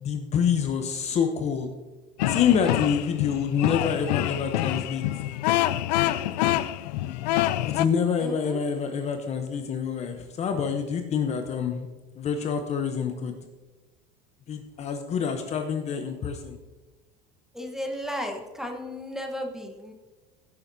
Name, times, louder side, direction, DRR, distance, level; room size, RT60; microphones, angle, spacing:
voice 1, 0.0-1.7 2.3-5.0 7.6-11.9 12.2-13.4 14.5-16.6, left 7 dB, 35° left, 6 dB, 0.8 m, -27 dB
sound 1, 2.2-7.8, left 14 dB, 85° left, 0.4 m, -26 dB
voice 2, 8.2-8.6 17.5-19.9, equal, ahead, 3 dB, 1.2 m, -34 dB
15.5 x 7.2 x 2.7 m, 1.2 s
supercardioid pair, 125°, 21 cm